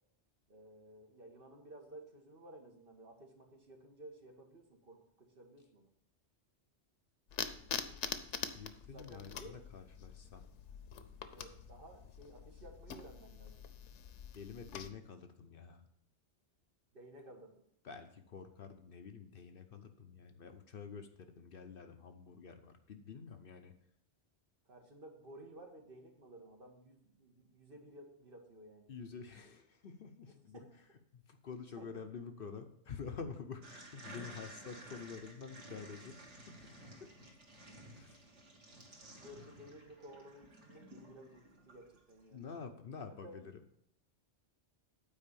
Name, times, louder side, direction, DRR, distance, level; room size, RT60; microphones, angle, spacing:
voice 1, 0.5-5.9 8.9-9.6 11.3-13.6 16.9-17.5 24.6-28.9 30.3-30.7 31.8-32.1 39.1-42.4 43.2-43.4, right 1 dB, 55° right, 3 dB, 1.5 m, -55 dB
sound 1, 7.3-14.9, left 7 dB, 90° left, 1.0 m, -45 dB
voice 2, 8.5-10.4 14.3-15.9 17.8-23.7 28.9-30.6 31.1-36.6 37.0-37.1 37.9-38.2 42.3-43.5, left 5 dB, 55° left, 7 dB, 0.9 m, -48 dB
sound 2, 33.6-42.2, right 1 dB, 90° right, 1.9 m, -54 dB
8.8 x 4.6 x 6.7 m, 0.74 s
omnidirectional pair, 1.2 m